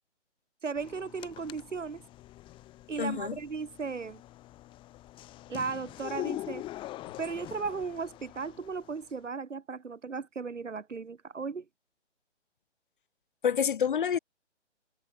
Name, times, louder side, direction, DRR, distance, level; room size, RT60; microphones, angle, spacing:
voice 1, 0.6-2.0 2.9-4.2 5.5-6.7 7.2-11.6, right 5 dB, 90° right, 1.1 m, -36 dB
sound 1, 0.8-9.1, left 15 dB, 15° left, 2.8 m, -43 dB
voice 2, 3.0-3.4 13.4-14.2, left 8 dB, 45° left, 0.8 m, -27 dB
figure-of-eight pair, 145°, 36 cm